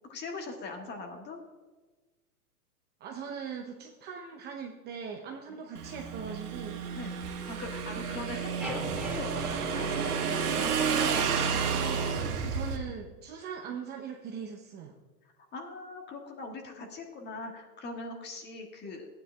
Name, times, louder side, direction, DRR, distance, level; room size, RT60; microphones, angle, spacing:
voice 1, 0.1-1.4 6.9-7.2 7.5-11.5 12.1-12.5 15.5-19.1, left 3 dB, 20° left, 3 dB, 1.5 m, -41 dB
voice 2, 3.0-6.8 10.8-11.2 11.5-12.1 12.5-14.9, right 6 dB, 20° right, 2 dB, 0.7 m, -40 dB
Motorcycle / Engine, 5.8-12.8, right 6 dB, 70° right, 1.7 m, -31 dB
sound 1, 8.6-10.9, equal, ahead, 2.1 m, -42 dB
15.0 x 9.6 x 2.3 m, 1.3 s
hypercardioid pair, 120°, 46 cm